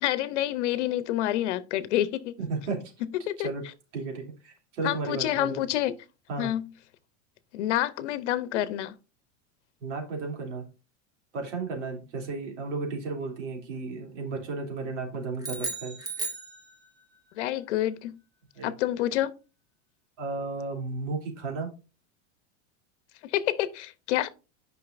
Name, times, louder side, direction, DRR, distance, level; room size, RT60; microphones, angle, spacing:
voice 1, 0.0-2.3 3.0-3.5 4.8-5.9 6.4-6.7 7.5-9.0 17.3-18.2 18.6-19.3 23.2-24.3, left 13 dB, 70° left, 0.8 m, -28 dB
voice 2, 2.4-2.9 3.4-3.6 3.9-5.6 6.3-6.5 9.8-10.7 11.3-16.0 18.6-18.7 20.2-21.7, right 3 dB, 75° right, 2.9 m, -34 dB
sound 1, 15.4-17.2, right 3 dB, 10° right, 0.8 m, -35 dB
9.3 x 5.4 x 2.5 m
supercardioid pair, 165°, 36 cm